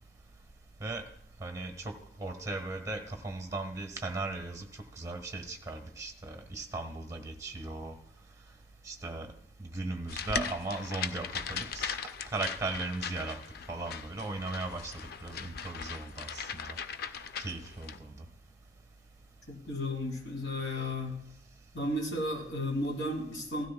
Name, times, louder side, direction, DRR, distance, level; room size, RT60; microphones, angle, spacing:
voice 1, 1.4-1.9 2.2-4.7 5.0-7.9 8.8-9.3 9.6-11.9 12.3-13.4 13.7-14.9 15.2-16.8 17.4-18.1, right 2 dB, 20° right, 6 dB, 1.2 m, -37 dB
sound 1, 10.1-18.0, left 6 dB, 55° left, 0.5 m, -39 dB
voice 2, 19.5-21.2 21.7-23.7, left 1 dB, 85° left, 0 dB, 2.9 m, -33 dB
16.5 x 12.5 x 2.2 m, 0.71 s
head